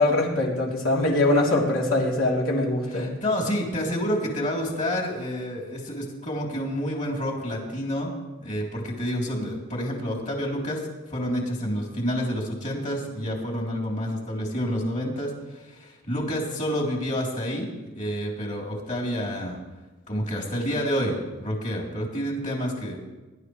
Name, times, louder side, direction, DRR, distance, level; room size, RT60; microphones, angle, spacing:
voice 1, 0.0-3.1, left 2 dB, 70° left, -2 dB, 3.5 m, -22 dB
voice 2, 2.9-8.1 8.4-10.8 11.1-19.6 20.1-23.0, equal, 35° left, -2 dB, 3.6 m, -29 dB
23.0 x 12.0 x 3.3 m, 1.2 s
head